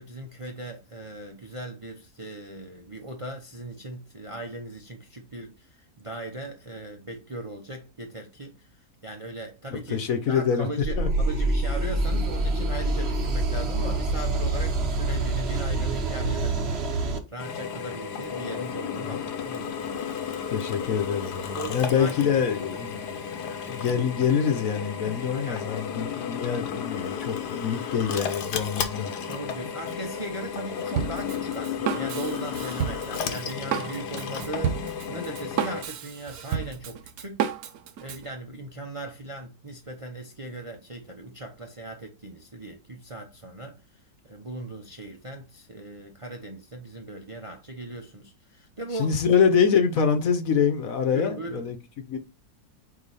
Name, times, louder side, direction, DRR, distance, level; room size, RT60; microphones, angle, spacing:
voice 1, 0.0-20.8 21.5-23.0 25.3-25.7 29.3-37.4 38.0-43.8 44.2-49.1 51.1-51.7, right 2 dB, 25° right, 0.7 m, -39 dB
voice 2, 9.7-10.7 11.0-11.1 19.0-19.1 20.5-23.2 23.7-29.1 48.9-51.8 52.1-52.2, left 7 dB, 60° left, 1.3 m, -25 dB
sound 1, 10.8-17.2, right 2 dB, 45° right, 1.1 m, -26 dB
Drill, 17.4-35.8, left 7 dB, 80° left, 1.5 m, -33 dB
Drum kit, 31.0-38.3, right 8 dB, 70° right, 1.2 m, -31 dB
5.0 x 4.5 x 4.1 m
omnidirectional pair, 1.7 m